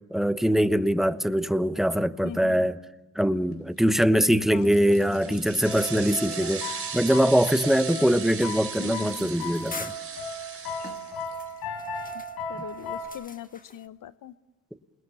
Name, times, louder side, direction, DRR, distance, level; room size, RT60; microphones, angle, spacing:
voice 1, 0.1-2.8 3.1-9.9, equal, ahead, 1.0 m, -23 dB
voice 2, 2.2-2.7 4.5-4.9 5.3-5.4 6.1-6.5 8.8-9.3 12.5-14.3, left 10 dB, 55° left, 0.8 m, -41 dB
sound 1, 4.5-11.5, right 5 dB, 35° right, 3.5 m, -38 dB
sound 2, 5.7-13.1, left 2 dB, 70° left, 5.7 m, -36 dB
sound 3, 7.5-13.9, left 3 dB, 20° left, 1.5 m, -46 dB
28.5 x 20.5 x 7.0 m
supercardioid pair, 65°, 38 cm